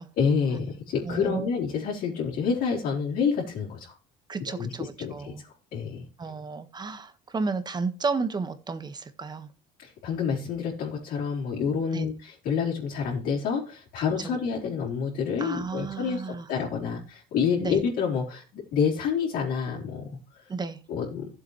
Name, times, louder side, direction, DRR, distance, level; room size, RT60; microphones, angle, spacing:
voice 1, 0.2-3.9 4.5-4.7 5.0-6.0 9.8-16.2 16.5-20.5 20.9-21.3, left 6 dB, 70° left, 3.9 m, -28 dB
voice 2, 1.0-1.5 4.3-5.4 6.2-9.5 11.9-12.1 14.2-14.3 15.4-16.5 17.6-17.8 20.5-20.8, right 4 dB, 25° right, 1.5 m, -32 dB
14.0 x 7.9 x 3.2 m
supercardioid pair, 90°, 15 cm